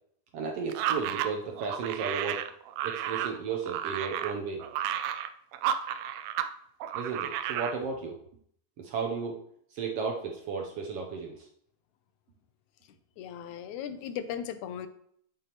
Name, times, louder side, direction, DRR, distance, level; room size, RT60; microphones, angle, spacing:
voice 1, 0.3-2.4 2.8-4.6 6.9-8.2 8.8-9.4 9.7-11.5, right 5 dB, 70° right, 1 dB, 1.5 m, -34 dB
sound 1, 0.7-6.5 6.8-7.8, right 10 dB, 90° right, 1.4 m, -32 dB
voice 2, 13.2-14.9, left 9 dB, 80° left, 11 dB, 2.0 m, -37 dB
8.6 x 7.7 x 3.0 m, 0.67 s
omnidirectional pair, 3.4 m